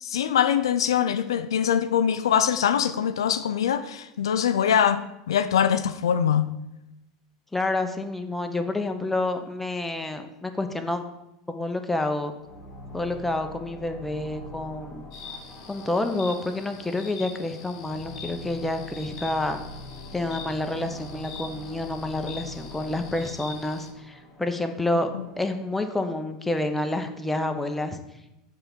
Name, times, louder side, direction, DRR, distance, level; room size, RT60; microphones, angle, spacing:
voice 1, 0.0-6.5 25.1-25.3, left 8 dB, 85° left, 11 dB, 0.4 m, -23 dB
voice 2, 7.5-11.0 11.5-12.3 12.9-15.1 15.7-19.6 20.1-25.1 25.4-28.0, left 2 dB, 5° left, 6 dB, 0.8 m, -28 dB
sound 1, 12.4-25.7, left 1 dB, 25° left, 1.7 m, -44 dB
sound 2, 15.1-23.9, left 6 dB, 70° left, 1.0 m, -44 dB
6.7 x 3.4 x 6.0 m, 0.89 s
hypercardioid pair, 95°, 3 cm